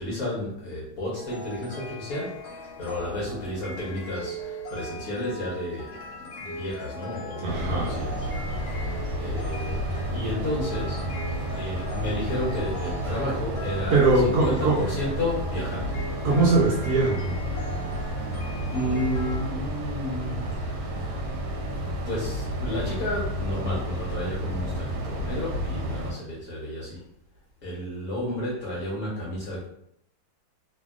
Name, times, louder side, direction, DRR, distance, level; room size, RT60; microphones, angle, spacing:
voice 1, 0.0-2.4 2.8-5.9 6.2-8.2 9.2-9.8 10.1-11.0 11.5-15.9 18.7-20.6 20.9-21.2 21.5-21.8 22.0-27.0 27.6-29.7, left 1 dB, 60° left, -5 dB, 1.0 m, -32 dB
sound 1, 1.2-19.4, equal, 80° left, 1.3 m, -40 dB
voice 2, 7.4-7.9 13.9-14.8 16.2-17.4, right 3 dB, 65° right, -5 dB, 1.0 m, -21 dB
sound 2, 7.5-26.1, equal, 85° right, 1.4 m, -31 dB
2.8 x 2.7 x 2.3 m, 0.72 s
omnidirectional pair, 2.1 m